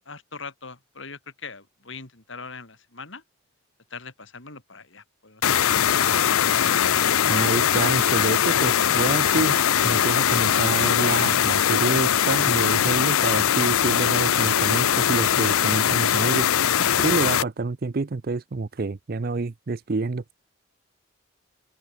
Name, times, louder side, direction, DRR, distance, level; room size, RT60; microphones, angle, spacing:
voice 1, 0.0-3.2 3.9-5.4, left 4 dB, 60° left, 3.2 m, -41 dB
sound 1, 5.4-17.4, left 9 dB, 85° left, 0.6 m, -21 dB
voice 2, 7.3-16.5 17.0-20.2, right 3 dB, 45° right, 0.5 m, -27 dB
open air
head